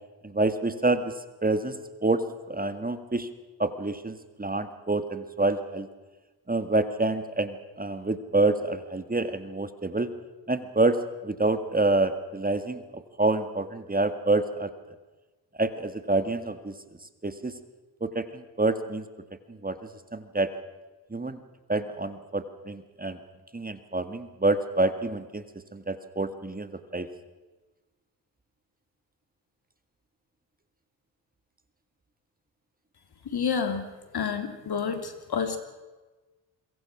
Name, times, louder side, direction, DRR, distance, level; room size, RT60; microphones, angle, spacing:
voice 1, 0.2-1.1 1.4-3.3 3.6-5.9 6.5-10.1 10.5-11.0 11.2-14.7 15.6-16.7 17.2-17.6 18.0-19.1 19.6-20.5 21.1-21.4 21.7-23.2 23.5-25.4 25.7-27.1, right 2 dB, 20° right, 10 dB, 1.9 m, -27 dB
voice 2, 33.2-33.8 34.1-35.6, left 6 dB, 60° left, 7 dB, 3.2 m, -29 dB
26.5 x 23.0 x 6.1 m, 1.2 s
cardioid pair, 70°, 43 cm